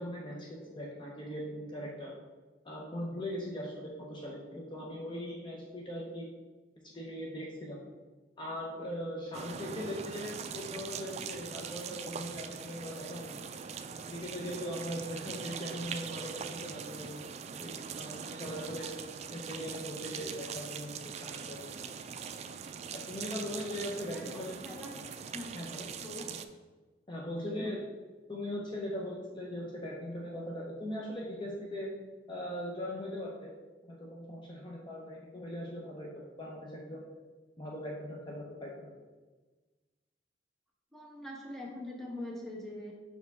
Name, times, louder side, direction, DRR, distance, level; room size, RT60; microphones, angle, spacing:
voice 1, 0.0-2.1 2.6-6.3 6.8-7.8 8.4-13.4 14.1-17.2 17.6-17.7 18.0-18.9 19.3-20.9 21.2-21.9 22.9-24.6 25.5-25.9 27.1-27.8 28.3-31.9 32.3-33.5 34.0-37.1 37.6-38.9, equal, 25° left, -3 dB, 0.7 m, -40 dB
sound 1, 9.3-26.5, right 6 dB, 40° right, 0.3 m, -42 dB
voice 2, 24.1-25.0 25.3-25.5 26.0-26.3 27.5-27.8 40.9-42.9, left 1 dB, ahead, -3 dB, 1.1 m, -43 dB
5.8 x 4.6 x 3.5 m, 1.3 s
head